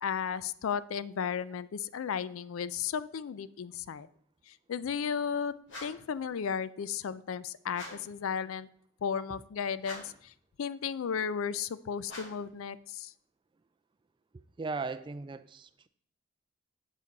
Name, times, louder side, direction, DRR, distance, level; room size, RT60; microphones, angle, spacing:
voice 1, 0.0-4.1 4.5-5.5 5.8-8.7 9.0-10.3 10.6-13.1, left 7 dB, 85° left, 0.4 m, -34 dB
sound 1, 5.7-6.1 7.7-8.2 9.8-10.3 12.0-12.5, left 1 dB, 65° left, 2.5 m, -46 dB
voice 2, 14.6-15.9, right 4 dB, 25° right, 0.3 m, -37 dB
8.1 x 7.5 x 4.0 m
head